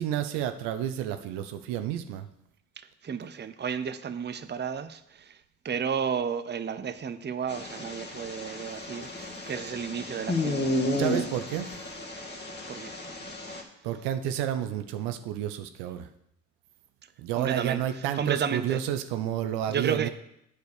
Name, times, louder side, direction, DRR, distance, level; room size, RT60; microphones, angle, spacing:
voice 1, 0.0-2.3 10.2-10.4 10.8-11.7 13.8-16.1 17.2-20.1, right 11 dB, 75° right, 10 dB, 0.8 m, -30 dB
voice 2, 3.0-5.4 5.6-10.8 12.7-13.0 17.4-17.8 18.1-18.8 19.7-20.1, right 7 dB, 25° right, 12 dB, 0.7 m, -32 dB
sound 1, 7.5-13.6, left 1 dB, 25° left, 2.0 m, -32 dB
8.1 x 5.0 x 6.5 m, 0.78 s
hypercardioid pair, 55°, 41 cm